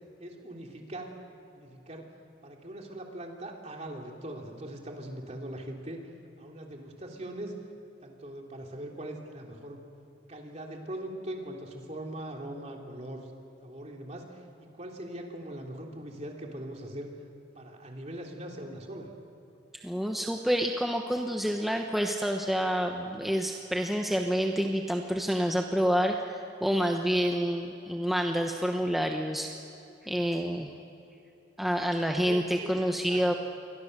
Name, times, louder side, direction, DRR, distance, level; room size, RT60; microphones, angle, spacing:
voice 1, 0.2-1.1 1.5-2.1 2.4-6.0 6.4-7.5 8.0-9.8 10.3-13.3 13.6-17.1 17.5-19.1 32.1-33.4, right 1 dB, 35° right, 1 dB, 3.2 m, -41 dB
voice 2, 19.8-29.5 30.0-30.7 31.6-33.3, equal, ahead, 2 dB, 1.0 m, -28 dB
29.0 x 23.0 x 6.8 m, 2.9 s
head